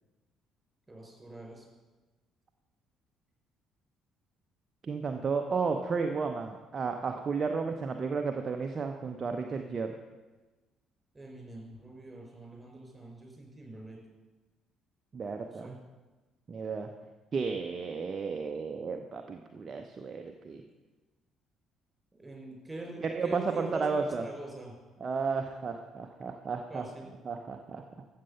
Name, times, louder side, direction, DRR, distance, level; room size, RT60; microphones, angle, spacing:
voice 1, 0.9-1.6 11.1-14.0 15.4-15.8 22.2-24.7 26.7-27.1, right 2 dB, 15° right, 0 dB, 5.0 m, -44 dB
voice 2, 4.8-10.0 15.1-15.8 16.5-16.9 17.3-20.6 23.0-24.2 25.0-26.8 27.3-27.8, right 5 dB, 40° right, 5 dB, 0.8 m, -33 dB
14.0 x 7.7 x 5.7 m, 1.2 s
figure-of-eight pair, 50°, 0 cm